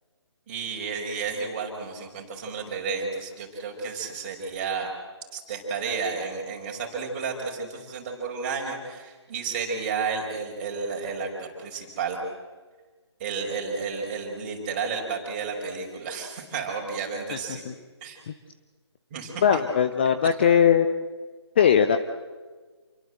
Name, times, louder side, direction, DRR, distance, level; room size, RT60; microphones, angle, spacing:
voice 1, 0.5-4.9 5.3-12.2 13.2-17.7 18.0-18.2 19.1-19.6, right 5 dB, 20° right, 1 dB, 5.4 m, -32 dB
voice 2, 19.4-20.9 21.6-22.0, left 8 dB, 25° left, 8 dB, 0.8 m, -19 dB
28.5 x 22.5 x 7.9 m, 1.4 s
figure-of-eight pair, 150°, 15 cm